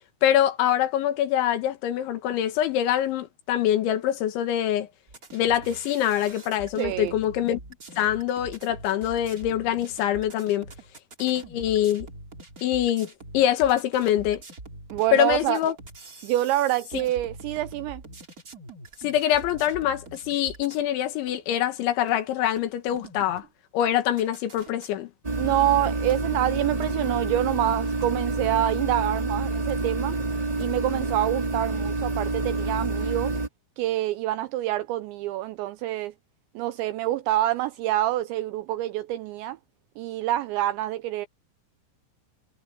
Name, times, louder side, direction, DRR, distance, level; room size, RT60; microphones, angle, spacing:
voice 1, 0.2-4.9 5.3-7.6 8.0-10.7 11.2-12.1 12.6-14.4 15.1-15.8 16.9-17.0 19.0-23.4 23.7-25.1, left 11 dB, 70° left, 3.8 m, -24 dB
sound 1, 5.1-20.9 21.3-21.4 22.1-22.2 22.6-23.5 23.8-24.9, right 2 dB, 25° right, 2.3 m, -44 dB
voice 2, 6.8-7.1 14.9-15.6 16.2-18.0 25.4-30.2 30.6-33.4 33.8-36.1 36.6-39.6 40.0-41.3, right 14 dB, 90° right, 2.6 m, -26 dB
sound 2, 25.2-33.5, right 2 dB, 45° right, 0.4 m, -28 dB
omnidirectional pair, 5.9 m